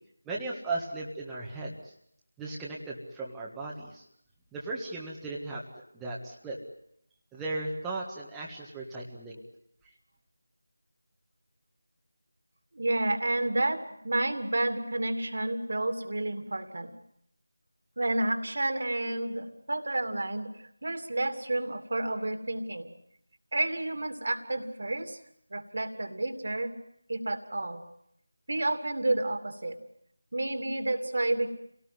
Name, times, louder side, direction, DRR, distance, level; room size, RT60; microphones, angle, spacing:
voice 1, 0.2-1.9 2.4-4.0 4.5-5.6 5.9-6.6 7.3-9.4, right 2 dB, 5° right, -5 dB, 1.7 m, -36 dB
voice 2, 12.7-16.9 18.0-20.5 20.8-22.9 23.5-25.2 25.5-26.7 27.1-27.8 28.5-29.8 30.3-31.5, right 2 dB, 55° right, 8 dB, 2.7 m, -30 dB
27.5 x 18.0 x 9.3 m, 0.73 s
figure-of-eight pair, 165°, 0 cm